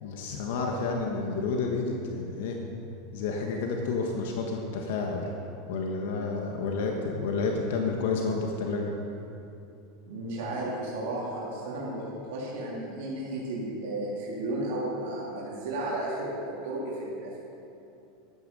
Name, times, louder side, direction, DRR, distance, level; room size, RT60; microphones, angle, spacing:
voice 1, 0.0-2.6 3.1-5.3 5.7-8.9, left 4 dB, 75° left, 1 dB, 1.3 m, -30 dB
voice 2, 10.1-17.5, right 1 dB, 70° right, -5 dB, 2.9 m, -33 dB
12.0 x 9.3 x 5.5 m, 2.7 s
supercardioid pair, 130°, 0 cm